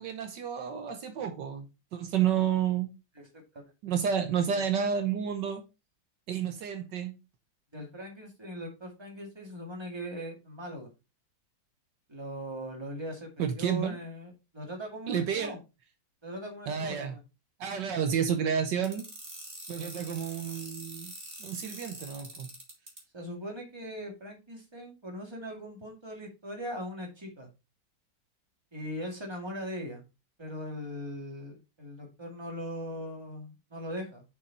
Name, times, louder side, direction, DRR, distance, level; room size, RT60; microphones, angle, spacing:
voice 1, 0.0-1.7 1.9-2.9 3.8-5.6 6.3-7.1 13.4-14.0 15.1-15.6 16.7-17.1 17.6-19.0 19.7-21.1 21.4-22.5, right 8 dB, 75° right, 1.5 m, -30 dB
voice 2, 3.2-3.7 4.5-4.6 7.7-10.9 12.1-13.3 13.6-15.6 16.2-17.2 19.7-19.9 23.1-27.5 28.7-30.0 30.4-34.2, equal, 15° right, 2.3 m, -40 dB
sound 1, 18.8-23.0, right 2 dB, 30° right, 2.7 m, -44 dB
6.5 x 5.6 x 4.2 m
omnidirectional pair, 2.0 m